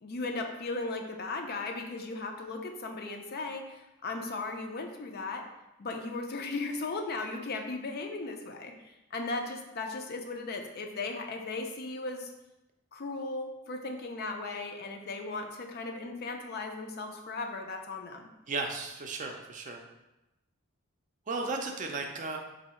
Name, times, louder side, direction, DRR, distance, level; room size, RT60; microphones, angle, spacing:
voice 1, 0.0-5.5 5.8-12.3 12.9-18.3, left 3 dB, 50° left, 4 dB, 0.4 m, -37 dB
voice 2, 18.5-19.8 21.3-22.4, right 3 dB, 35° right, 2 dB, 0.5 m, -35 dB
3.8 x 2.7 x 4.3 m, 0.95 s
head